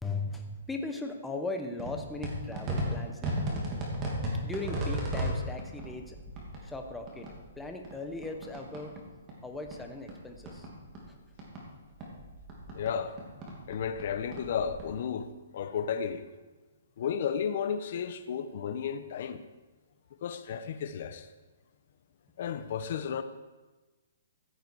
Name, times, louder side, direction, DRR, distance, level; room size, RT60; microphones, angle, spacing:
voice 1, 0.0-3.8 4.4-6.2 6.6-7.3 7.6-8.9 9.4-10.7, left 3 dB, 5° left, 1.0 m, -38 dB
sound 1, 1.8-9.0 9.3-11.6 11.9-14.8, right 1 dB, 20° right, 2.7 m, -36 dB
voice 2, 12.7-13.1 13.7-16.2 17.0-19.4 20.2-21.3 22.4-23.2, left 7 dB, 50° left, 0.9 m, -33 dB
15.5 x 8.1 x 4.7 m
hypercardioid pair, 160°, 0 cm